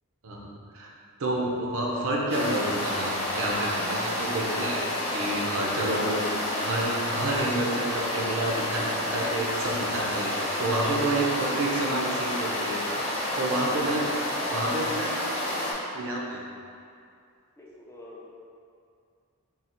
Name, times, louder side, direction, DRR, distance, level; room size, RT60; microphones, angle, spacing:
voice 1, 0.2-0.9 1.2-10.3 10.6-12.8 13.4-14.1 14.5-15.3 15.9-16.4, right 1 dB, 65° right, -2 dB, 0.6 m, -29 dB
voice 2, 1.5-2.5 13.3-14.2 17.6-18.3, left 1 dB, 10° left, -4 dB, 0.4 m, -45 dB
sound 1, 2.3-15.7, left 1 dB, 30° left, 0.9 m, -30 dB
3.8 x 2.4 x 4.3 m, 2.4 s
head